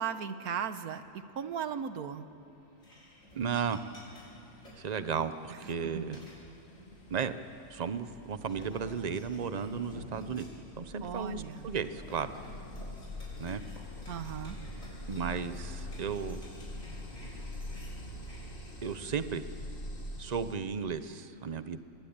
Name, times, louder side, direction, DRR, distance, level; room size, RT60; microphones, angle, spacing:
voice 1, 0.0-2.3 5.5-6.2 11.0-11.7 14.1-14.6, right 8 dB, 85° right, 11 dB, 1.5 m, -37 dB
sound 1, 2.8-4.8 5.5-5.9 6.1-7.3 7.9-8.0 8.3-10.6 10.8-10.9 11.3-18.7, left 1 dB, 65° left, 5.9 m, -52 dB
sound 2, 2.8-2.9 3.3-20.6, left 1 dB, 40° left, 2.4 m, -45 dB
voice 2, 3.3-3.8 4.8-6.2 7.1-7.4 7.7-10.5 10.8-12.3 13.4-13.6 15.1-16.4 18.8-19.4 20.2-21.8, right 6 dB, 35° right, 11 dB, 0.8 m, -34 dB
25.5 x 21.0 x 8.8 m, 2.7 s
omnidirectional pair, 1.5 m